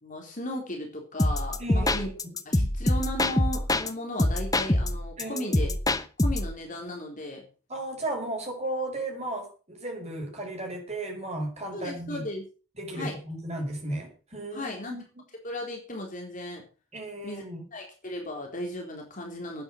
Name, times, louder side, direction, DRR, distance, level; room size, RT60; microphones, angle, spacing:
voice 1, 0.0-2.1 2.5-5.7 6.2-7.4 11.7-12.4 12.9-13.2 14.5-15.0 15.4-16.6 17.2-17.4 17.7-19.6, left 1 dB, 35° left, 0 dB, 3.9 m, -36 dB
sound 1, 1.2-3.9 4.2-6.5, left 1 dB, 15° left, 0.9 m, -25 dB
voice 2, 1.6-2.4 5.2-5.7 7.7-12.2 12.8-15.0 16.9-17.6, right 1 dB, 30° right, 2 dB, 5.4 m, -35 dB
11.5 x 9.3 x 7.8 m, 0.36 s
head